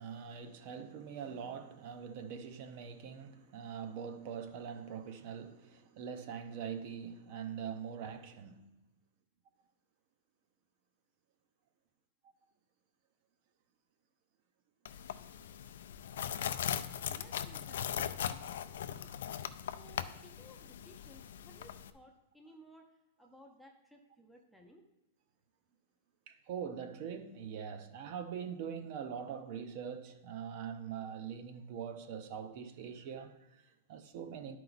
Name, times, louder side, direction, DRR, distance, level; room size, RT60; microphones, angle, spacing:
voice 1, 0.0-8.7 26.3-34.6, right 7 dB, 35° right, 0.6 m, -43 dB
sound 1, 14.9-21.9, left 9 dB, 65° left, 0.4 m, -39 dB
voice 2, 17.1-19.1 19.6-22.9 23.2-24.8, equal, ahead, 0.6 m, -59 dB
10.5 x 4.6 x 4.0 m
supercardioid pair, 175°, 0 cm